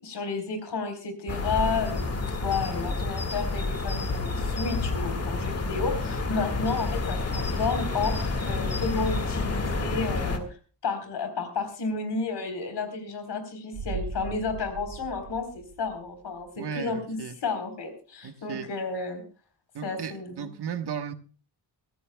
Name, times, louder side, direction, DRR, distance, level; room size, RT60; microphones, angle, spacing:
voice 1, 0.0-10.4 10.8-19.2 19.8-20.5, left 4 dB, 80° left, 7 dB, 4.1 m, -32 dB
sound 1, 1.3-10.4, left 3 dB, 35° left, 1.9 m, -29 dB
sound 2, 13.7-16.4 16.7-16.8, right 4 dB, 90° right, 1.2 m, -38 dB
voice 2, 16.6-17.4 18.2-18.7 19.7-21.1, right 7 dB, 70° right, 8 dB, 1.4 m, -35 dB
24.0 x 14.0 x 2.3 m, 0.37 s
wide cardioid pair, 145°, 41 cm